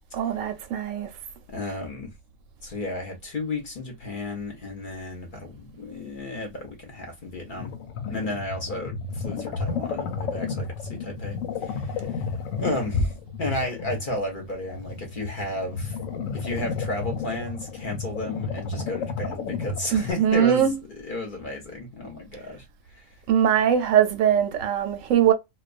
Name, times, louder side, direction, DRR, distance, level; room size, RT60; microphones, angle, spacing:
voice 1, 0.1-1.1 19.9-20.7 23.3-25.3, right 9 dB, 80° right, 1.0 m, -21 dB
voice 2, 1.5-2.1 2.6-7.7 8.1-12.2 12.6-13.1 13.4-16.0 16.3-22.6 22.9-23.1, left 2 dB, 45° left, 0.8 m, -33 dB
sound 1, 7.6-20.1, left 5 dB, 75° left, 1.0 m, -32 dB
2.3 x 2.3 x 2.4 m
omnidirectional pair, 1.4 m